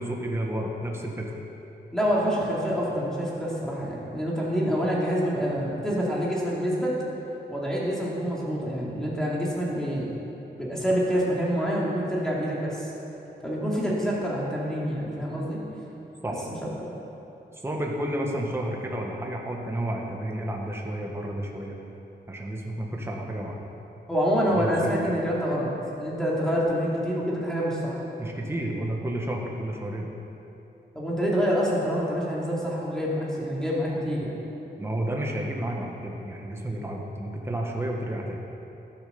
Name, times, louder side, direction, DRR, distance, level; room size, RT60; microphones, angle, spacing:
voice 1, 0.0-1.4 16.2-16.4 17.6-21.8 22.3-23.6 24.5-25.2 28.2-30.1 34.8-38.4, right 1 dB, 15° right, -1 dB, 1.5 m, -31 dB
voice 2, 1.9-6.9 7.5-10.1 10.6-12.9 13.4-15.6 16.3-16.4 24.1-28.0 30.9-34.3, equal, 5° left, -6 dB, 2.5 m, -27 dB
12.0 x 10.5 x 7.0 m, 3.0 s
wide cardioid pair, 155°, 18 cm